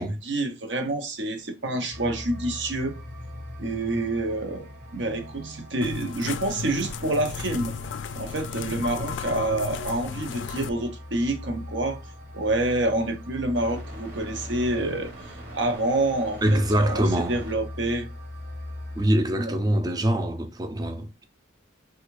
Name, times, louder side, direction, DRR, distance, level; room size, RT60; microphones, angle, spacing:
voice 1, 0.0-3.0 3.6-4.7 4.9-7.7 8.2-12.0 12.3-15.1 15.5-18.1 19.4-19.5, right 2 dB, 70° right, 0.7 m, -27 dB
sound 1, 1.9-19.1, left 1 dB, 50° right, 1.0 m, -41 dB
sound 2, 5.8-10.7, left 6 dB, 70° left, 0.3 m, -34 dB
voice 2, 16.4-17.4 19.0-21.2, right 1 dB, 20° right, 0.4 m, -24 dB
3.3 x 2.3 x 3.1 m
head